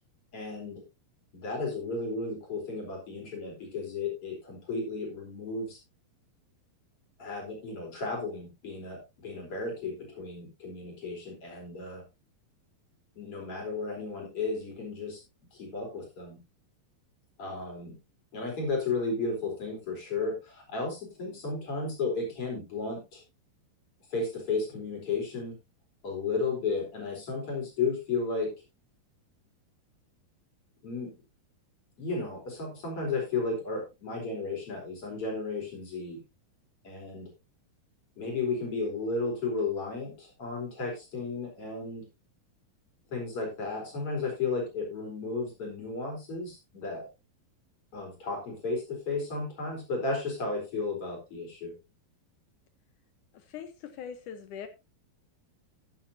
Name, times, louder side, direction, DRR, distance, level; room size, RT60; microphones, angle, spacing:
voice 1, 0.3-0.8 1.3-5.8 7.2-12.0 13.2-15.2 15.5-16.4 17.4-18.0 18.3-23.2 24.1-25.5 26.0-28.5 30.8-31.1 32.0-36.2 36.8-37.3 38.2-42.0 43.1-47.1 47.9-51.7, left 3 dB, 35° left, 1 dB, 4.8 m, -34 dB
voice 2, 53.3-54.7, left 8 dB, 70° left, 10 dB, 2.0 m, -42 dB
13.0 x 9.9 x 2.7 m, 0.25 s
omnidirectional pair, 4.6 m